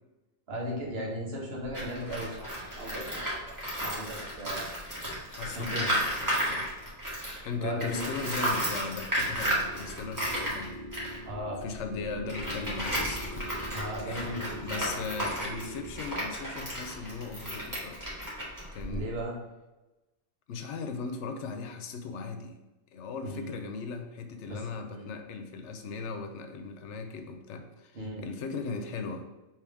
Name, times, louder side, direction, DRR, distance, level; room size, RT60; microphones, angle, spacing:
voice 1, 0.5-4.7 5.5-5.9 7.6-8.3 11.3-11.6 13.7-15.0 18.9-19.4 23.2-23.7 24.4-25.1 27.9-28.3, equal, 65° right, -3 dB, 1.3 m, -37 dB
Tools, 1.6-7.5 7.8-19.2, equal, 15° right, 1.2 m, -33 dB
voice 2, 5.3-6.7 7.4-10.7 11.6-13.6 14.0-18.0 18.7-19.1 20.5-22.5 22.9-29.2, left 4 dB, 90° left, 7 dB, 0.9 m, -38 dB
sound 1, 9.1-16.0, equal, 45° left, 0.7 m, -43 dB
3.5 x 3.1 x 4.6 m, 1.1 s
omnidirectional pair, 1.2 m